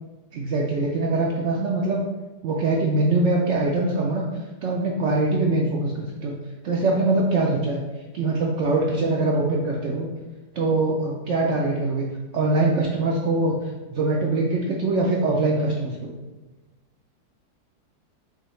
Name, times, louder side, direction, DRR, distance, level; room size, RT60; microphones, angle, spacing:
voice 1, 0.3-2.0 2.4-4.3 4.6-6.3 6.6-7.8 8.1-10.1 10.6-12.0 12.3-13.6 13.9-16.1, right 2 dB, 85° right, -2 dB, 0.6 m, -23 dB
5.9 x 2.3 x 3.1 m, 1.2 s
omnidirectional pair, 1.8 m